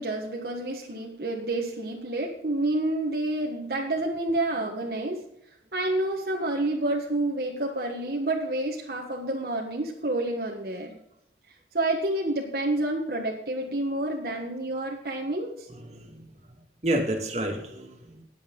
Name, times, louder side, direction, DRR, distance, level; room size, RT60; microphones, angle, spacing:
voice 1, 0.0-5.2 5.7-11.0 11.7-15.7, right 2 dB, 60° right, -1 dB, 1.5 m, -29 dB
voice 2, 15.7-16.6 16.8-18.2, right 1 dB, 40° right, 2 dB, 2.3 m, -30 dB
19.5 x 7.9 x 3.9 m, 0.79 s
head